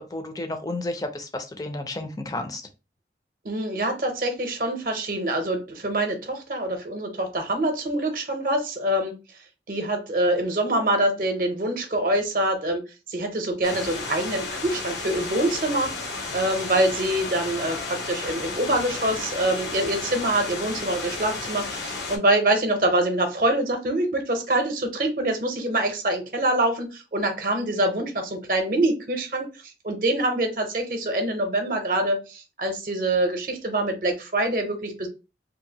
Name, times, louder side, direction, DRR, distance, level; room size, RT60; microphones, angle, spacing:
voice 1, 0.0-2.7, left 2 dB, 20° left, 7 dB, 0.4 m, -32 dB
voice 2, 3.4-9.1 9.7-35.1, right 1 dB, 50° right, 5 dB, 0.6 m, -25 dB
sound 1, 13.6-22.2, left 3 dB, 80° left, 0.8 m, -33 dB
2.7 x 2.5 x 2.7 m, 0.29 s
head